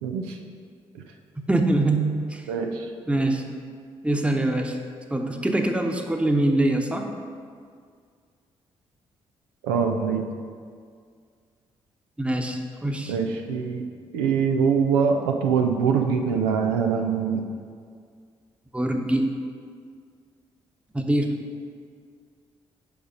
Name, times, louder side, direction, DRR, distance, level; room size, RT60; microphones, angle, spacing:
voice 1, 0.0-0.4 0.9-1.0 2.5-2.9 9.6-10.2 13.1-13.9 14.1-17.4, right 6 dB, 90° right, 3 dB, 0.5 m, -23 dB
voice 2, 1.5-2.4 3.1-3.4 4.0-4.8 5.1-7.1 12.2-13.1 18.7-19.3 20.9-21.3, right 1 dB, 10° right, 3 dB, 1.0 m, -23 dB
7.0 x 5.1 x 5.1 m, 2.1 s
hypercardioid pair, 40°, 13 cm